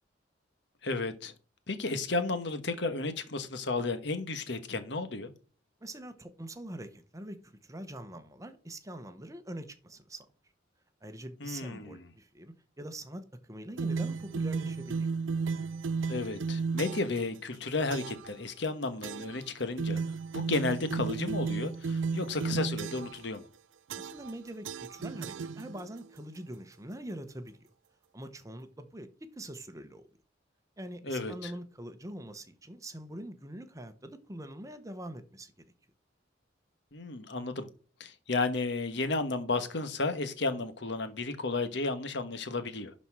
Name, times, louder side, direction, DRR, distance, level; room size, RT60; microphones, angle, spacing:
voice 1, 0.8-1.3 1.7-5.3 11.4-11.9 16.1-20.0 20.3-23.5 31.0-31.5 36.9-37.7 38.0-42.9, left 3 dB, 65° left, 1.2 m, -33 dB
voice 2, 5.8-10.3 11.0-15.1 23.9-27.7 28.1-30.1 30.8-35.5, right 1 dB, 15° right, 0.9 m, -44 dB
sound 1, 13.8-17.2 17.9-18.3 19.0-19.4 19.8-23.2 23.9-24.3 24.6-26.0, right 5 dB, 85° right, 0.4 m, -34 dB
11.5 x 4.3 x 4.7 m
head